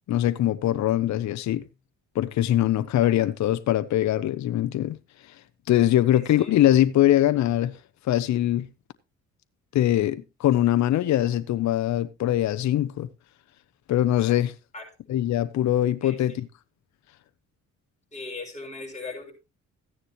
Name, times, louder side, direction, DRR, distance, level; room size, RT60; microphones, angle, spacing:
voice 1, 0.1-1.6 2.1-5.0 5.7-7.8 8.0-8.7 9.7-13.1 13.9-14.5 15.1-16.5, left 13 dB, 65° left, 0.7 m, -22 dB
voice 2, 6.1-6.5 14.7-14.8 16.0-16.4 18.1-19.3, left 3 dB, 25° left, 6.8 m, -39 dB
14.5 x 9.7 x 3.0 m
cardioid pair, 90°, 30 cm